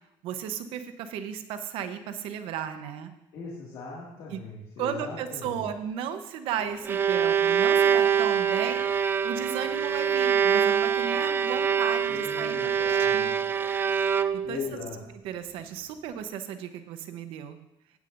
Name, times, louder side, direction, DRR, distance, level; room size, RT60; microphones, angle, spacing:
voice 1, 0.2-3.1 4.3-4.4 4.8-13.3 14.3-14.6 15.2-17.6, right 8 dB, 65° right, 9 dB, 0.9 m, -35 dB
voice 2, 3.3-5.7 12.1-13.3 14.4-15.0, left 4 dB, 55° left, -4 dB, 2.0 m, -39 dB
Bowed string instrument, 6.6-14.7, right 7 dB, 20° right, 0.3 m, -24 dB
16.0 x 8.5 x 2.6 m, 0.86 s
cardioid pair, 150°, 10 cm